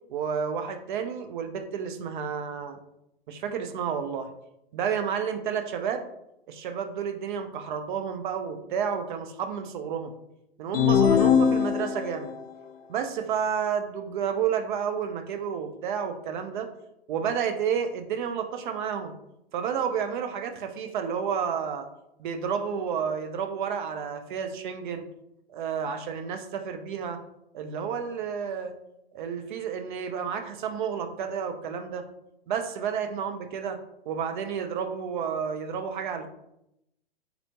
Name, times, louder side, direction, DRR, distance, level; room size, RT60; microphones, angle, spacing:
voice 1, 0.1-2.8 3.3-4.3 4.7-6.0 6.5-10.1 10.6-12.3 12.9-16.7 17.1-19.2 19.5-21.9 22.2-25.1 25.5-27.2 27.5-28.7 29.1-32.1 32.5-33.8 34.1-36.3, right 7 dB, 50° right, 7 dB, 0.6 m, -30 dB
sound 1, 10.7-12.3, left 8 dB, 70° left, 0.5 m, -21 dB
4.3 x 4.1 x 2.9 m, 0.81 s
hypercardioid pair, 130°, 31 cm